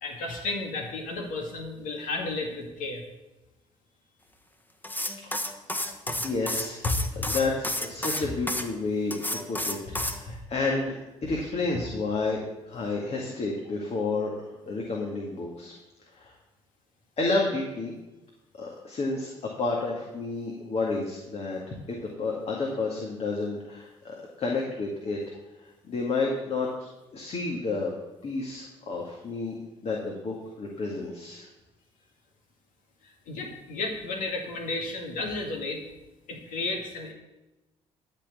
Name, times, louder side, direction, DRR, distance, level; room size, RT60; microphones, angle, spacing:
voice 1, 0.0-3.0 6.1-6.2 7.1-7.3 33.3-35.8 36.3-37.1, left 3 dB, 75° left, 2 dB, 2.1 m, -33 dB
sound 1, 4.8-8.6 9.1-10.2, left 1 dB, 15° left, 1.4 m, -31 dB
voice 2, 6.2-6.8 7.1-9.8 10.1-12.4 12.7-14.3 14.7-15.7 16.2-16.3 17.2-17.9 18.6-19.3 19.6-25.2 25.6-27.9 28.2-29.6 29.8-31.5, left 3 dB, 50° left, -1 dB, 2.1 m, -30 dB
13.0 x 4.5 x 8.4 m, 1.0 s
supercardioid pair, 60°, 14 cm